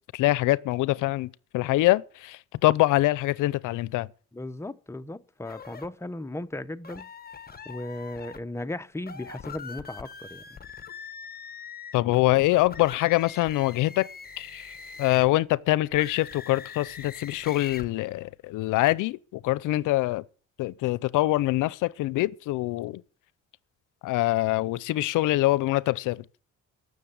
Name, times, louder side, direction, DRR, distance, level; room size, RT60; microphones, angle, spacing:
voice 1, 0.1-4.1 11.9-14.1 14.4-20.2 20.6-23.0 24.0-26.2, left 18 dB, 85° left, 0.6 m, -24 dB
voice 2, 4.3-7.1 7.7-10.4, left 1 dB, 10° left, 0.8 m, -36 dB
sound 1, 5.4-5.9 6.8-8.4 9.0-15.4 15.9-17.9, left 6 dB, 30° left, 1.3 m, -43 dB
15.0 x 6.5 x 8.7 m
cardioid pair, 90°, 30 cm